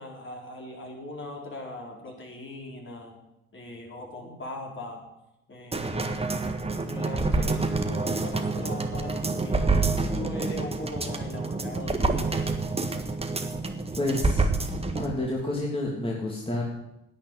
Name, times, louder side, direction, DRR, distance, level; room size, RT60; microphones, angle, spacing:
voice 1, 0.0-3.1 3.5-5.0 5.5-6.1 6.8-12.6, left 1 dB, 40° left, 0 dB, 4.4 m, -39 dB
sound 1, 5.7-15.1 15.5-15.6, right 3 dB, 20° right, 1.6 m, -27 dB
voice 2, 14.0-14.5 15.0-16.6, left 2 dB, 15° left, -3 dB, 2.9 m, -29 dB
10.5 x 8.8 x 8.3 m, 0.89 s
supercardioid pair, 65°, 31 cm